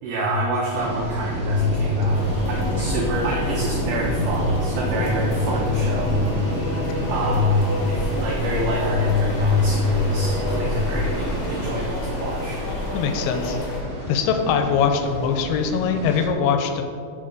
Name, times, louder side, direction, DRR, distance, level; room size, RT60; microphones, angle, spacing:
voice 1, 0.0-6.2 7.1-12.6, left 1 dB, 80° right, -2 dB, 1.8 m, -24 dB
sound 1, 0.7-16.3, equal, 60° right, 0.7 m, -29 dB
sound 2, 1.6-13.6, left 2 dB, 55° left, 3.1 m, -34 dB
sound 3, 2.1-13.8, left 1 dB, 75° left, 2.8 m, -31 dB
voice 2, 12.9-13.8 14.1-16.8, left 6 dB, 90° left, 6 dB, 2.6 m, -22 dB
8.5 x 5.4 x 3.8 m, 2.3 s
omnidirectional pair, 4.6 m